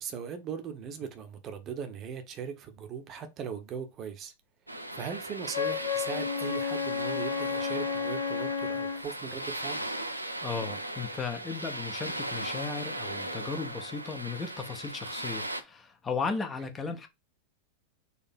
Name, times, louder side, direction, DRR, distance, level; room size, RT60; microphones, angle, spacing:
voice 1, 0.0-4.3 4.9-9.8, right 7 dB, 30° right, 0.9 m, -39 dB
sound 1, 4.7-15.6, right 1 dB, 85° right, 0.5 m, -37 dB
Wind instrument woodwind instrument, 5.5-9.1, left 7 dB, 65° left, 1.0 m, -32 dB
voice 2, 10.4-17.1, left 5 dB, 20° left, 0.8 m, -36 dB
4.2 x 2.8 x 4.2 m
figure-of-eight pair, 90°, 0 cm